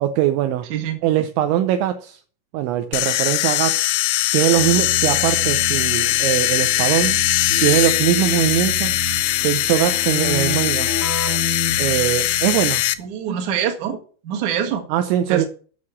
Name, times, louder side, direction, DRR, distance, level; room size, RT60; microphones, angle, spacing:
voice 1, 0.0-0.7 1.0-2.2 2.5-3.9 4.3-7.2 7.6-9.0 9.4-10.9 11.8-12.8 14.9-15.5, right 12 dB, 80° right, 2.8 m, -21 dB
voice 2, 0.7-1.0 13.0-14.0 14.2-14.8 15.3-15.5, right 9 dB, 60° right, 2.1 m, -24 dB
sound 1, 2.9-12.9, left 16 dB, 80° left, 3.0 m, -21 dB
Keyboard (musical), 4.5-12.9, equal, 50° left, 1.2 m, -30 dB
9.5 x 6.4 x 7.1 m
omnidirectional pair, 5.8 m